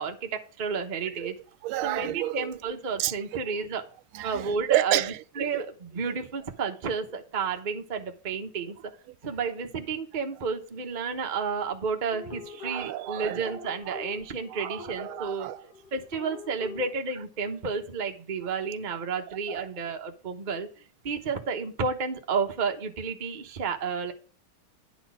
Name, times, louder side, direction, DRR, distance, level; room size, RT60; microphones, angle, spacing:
voice 1, 0.0-1.3 1.8-3.8 4.2-5.0 5.4-8.8 9.2-15.5 15.9-20.7 21.0-24.1, right 5 dB, 35° right, 0.7 m, -31 dB
voice 2, 1.6-2.5 3.0-3.3 4.1-5.6 6.1-6.2 12.6-13.5 13.9-14.0 14.5-15.6 19.5-19.7, right 15 dB, 85° right, 1.4 m, -31 dB
sound 1, 12.1-16.9, left 5 dB, 55° left, 1.7 m, -44 dB
9.9 x 4.1 x 6.2 m
omnidirectional pair, 2.3 m